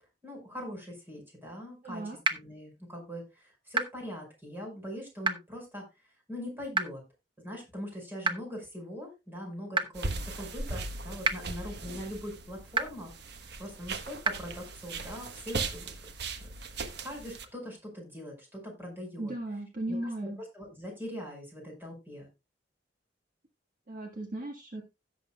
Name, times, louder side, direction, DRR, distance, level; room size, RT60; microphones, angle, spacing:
voice 1, 0.2-5.8 6.3-7.0 7.4-15.9 17.0-19.3 19.9-22.3, equal, 10° right, 0 dB, 5.1 m, -42 dB
voice 2, 1.8-2.2 19.2-20.4 23.9-24.8, right 1 dB, 50° right, 2 dB, 1.6 m, -36 dB
sound 1, 2.2-2.3 3.7-3.8 5.2-5.3 6.7-6.8 8.2-8.3 9.7-9.8 11.2-11.3 12.7-12.8 14.2-14.3, right 4 dB, 25° right, 0.9 m, -26 dB
sound 2, 9.9-17.5, right 3 dB, 65° right, 1.1 m, -38 dB
16.5 x 7.5 x 2.3 m, 0.24 s
head